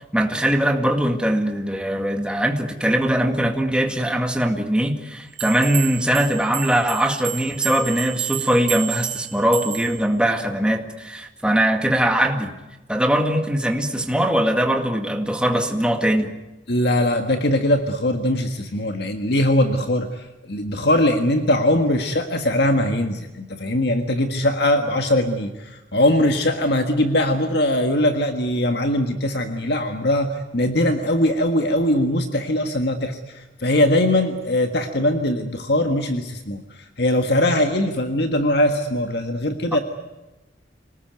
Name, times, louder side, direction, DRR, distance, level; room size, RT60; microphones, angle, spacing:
voice 1, 0.1-12.5 12.9-16.3, right 1 dB, 5° right, 4 dB, 2.0 m, -21 dB
sound 1, 5.4-10.0, right 14 dB, 70° right, 4.2 m, -30 dB
voice 2, 16.7-39.8, left 1 dB, 60° left, 6 dB, 1.7 m, -21 dB
26.5 x 19.5 x 9.4 m, 1.1 s
head